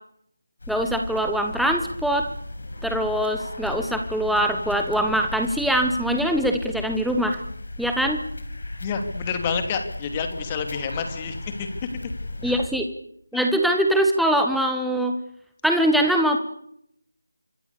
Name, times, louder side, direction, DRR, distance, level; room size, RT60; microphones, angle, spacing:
sound 1, 0.6-12.7, left 2 dB, 55° left, 6.6 m, -35 dB
voice 1, 0.7-2.3 2.8-7.4 7.8-8.2 12.4-12.9 13.3-15.1 15.6-16.4, right 1 dB, ahead, 3 dB, 1.3 m, -22 dB
voice 2, 8.8-11.7 12.4-12.5 13.3-13.5, left 6 dB, 20° left, 7 dB, 2.9 m, -29 dB
26.5 x 22.5 x 7.0 m, 0.72 s
figure-of-eight pair, 160°, 0 cm